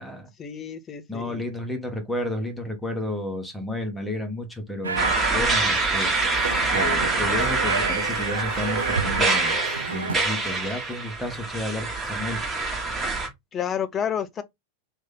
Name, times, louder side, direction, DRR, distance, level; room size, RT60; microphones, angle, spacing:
voice 1, 0.4-1.4 13.5-14.4, left 8 dB, 25° left, 0.6 m, -30 dB
voice 2, 1.1-6.4 6.7-9.6 9.9-12.4, left 1 dB, 5° left, 1.0 m, -31 dB
sound 1, 4.8-10.1, right 5 dB, 75° right, 0.5 m, -29 dB
sound 2, 5.0-13.3, right 3 dB, 15° right, 1.4 m, -26 dB
3.1 x 2.6 x 3.7 m
figure-of-eight pair, 90°, 0 cm